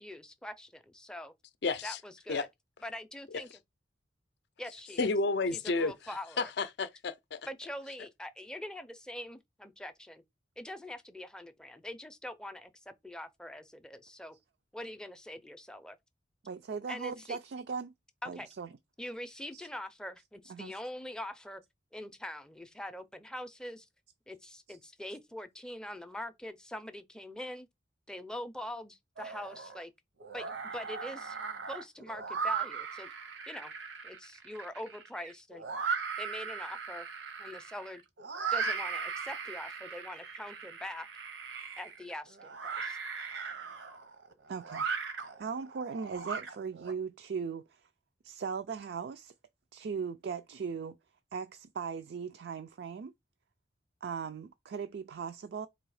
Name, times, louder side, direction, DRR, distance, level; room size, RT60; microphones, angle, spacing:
voice 1, 0.0-1.3 1.8-2.5 2.8-3.5 4.6-5.1 5.5-6.5 7.5-10.2 10.6-14.4 14.7-16.0 16.9-17.4 18.2-18.5 19.0-21.6 21.9-23.9 24.3-27.7 28.1-29.9 30.3-31.4 31.7-33.1 33.5-33.7 34.0-35.7 36.2-37.1 37.4-38.0 38.5-41.1 41.8-43.0, left 1 dB, 5° left, 0.4 m, -43 dB
voice 2, 1.6-2.0 2.3-2.5 5.0-5.9 6.4-7.4, left 3 dB, 60° left, 0.5 m, -31 dB
voice 3, 16.4-17.9 18.2-18.7 19.5-19.7 20.5-20.8 24.7-24.8 44.5-44.9 45.4-47.9 48.2-49.3 49.7-51.0 51.3-53.1 54.0-55.7, right 6 dB, 60° right, 0.3 m, -38 dB
sound 1, 29.2-29.8 30.2-46.9, right 5 dB, 80° right, 0.8 m, -38 dB
3.9 x 2.8 x 4.7 m
head